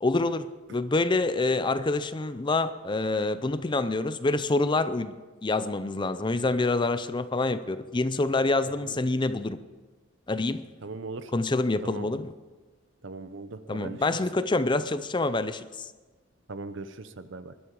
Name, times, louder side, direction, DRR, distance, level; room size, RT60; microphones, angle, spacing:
voice 1, 0.0-5.1 5.4-9.6 10.3-10.7 11.3-12.3 13.7-15.9, left 2 dB, 25° left, 0.5 m, -26 dB
voice 2, 10.8-11.3 11.8-12.1 13.0-14.0 16.5-17.5, right 3 dB, 65° right, 0.9 m, -39 dB
20.5 x 12.5 x 4.8 m
head